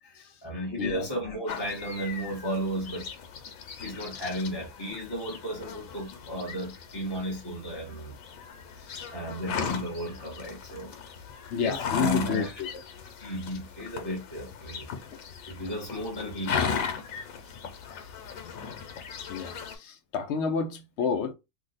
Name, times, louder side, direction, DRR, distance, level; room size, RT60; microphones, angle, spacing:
voice 1, 0.0-3.1 3.8-8.1 9.1-10.9 11.5-12.6 13.2-14.9 15.5-16.8, equal, 20° left, 0.8 m, -34 dB
voice 2, 0.8-1.1 8.9-9.1 11.5-12.7 17.9-18.1 19.3-21.3, left 6 dB, 65° left, 0.8 m, -30 dB
sound 1, 1.5-19.8, left 7 dB, 85° left, 1.1 m, -37 dB
2.8 x 2.1 x 3.9 m
omnidirectional pair, 1.4 m